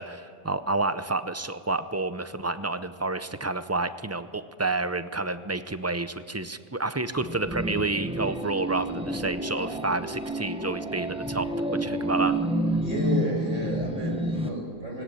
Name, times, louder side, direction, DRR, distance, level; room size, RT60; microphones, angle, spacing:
voice 1, 0.0-12.4, right 2 dB, 20° right, 11 dB, 0.4 m, -29 dB
sound 1, 7.2-14.5, right 1 dB, 5° right, 0.9 m, -29 dB
voice 2, 12.8-15.0, equal, 70° right, 1 dB, 5.5 m, -31 dB
18.5 x 17.5 x 9.7 m, 2.4 s
omnidirectional pair, 1.3 m